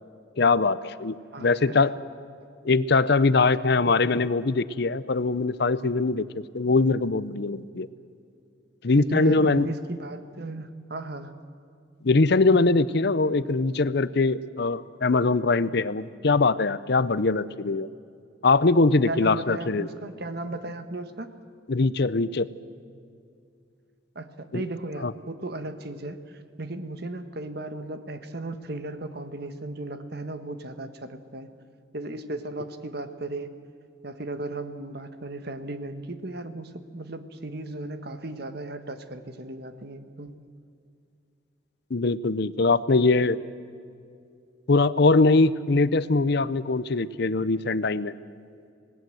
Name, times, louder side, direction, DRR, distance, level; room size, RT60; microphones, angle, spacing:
voice 1, 0.4-1.9 2.6-7.9 8.8-9.7 12.0-17.9 18.4-19.9 21.7-22.5 24.5-24.6 25.0-25.1 41.9-43.4 44.7-48.1, left 3 dB, 60° left, 16 dB, 0.7 m, -22 dB
voice 2, 1.3-1.8 9.1-11.3 19.1-21.4 24.1-31.5 31.9-33.5 34.0-40.3, right 2 dB, 55° right, 9 dB, 1.5 m, -36 dB
26.5 x 19.0 x 7.8 m, 2.4 s
head